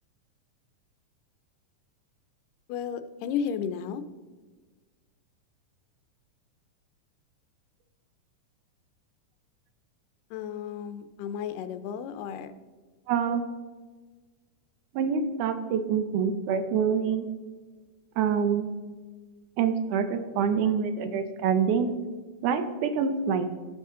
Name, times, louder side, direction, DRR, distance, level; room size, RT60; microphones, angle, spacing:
voice 1, 2.7-4.0 10.3-12.5, left 8 dB, 85° left, 11 dB, 2.2 m, -33 dB
voice 2, 13.1-13.4 14.9-17.3 18.2-18.7 19.6-21.9 22.4-23.5, right 7 dB, 75° right, 9 dB, 2.0 m, -26 dB
15.0 x 5.6 x 3.7 m, 1.3 s
omnidirectional pair, 3.8 m